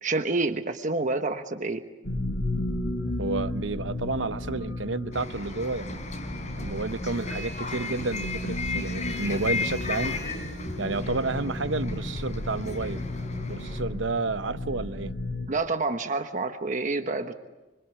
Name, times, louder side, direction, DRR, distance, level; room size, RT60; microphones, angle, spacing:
voice 1, 0.0-1.8 15.5-17.3, right 3 dB, 45° right, 1.2 m, -28 dB
sound 1, 2.0-15.5, left 1 dB, 85° left, 5.2 m, -34 dB
voice 2, 3.2-6.1 6.6-10.2 10.8-13.0 13.3-15.1, right 3 dB, 85° right, 0.9 m, -31 dB
Bus, 5.1-13.8, left 3 dB, 40° left, 4.3 m, -34 dB
26.0 x 26.0 x 8.1 m
head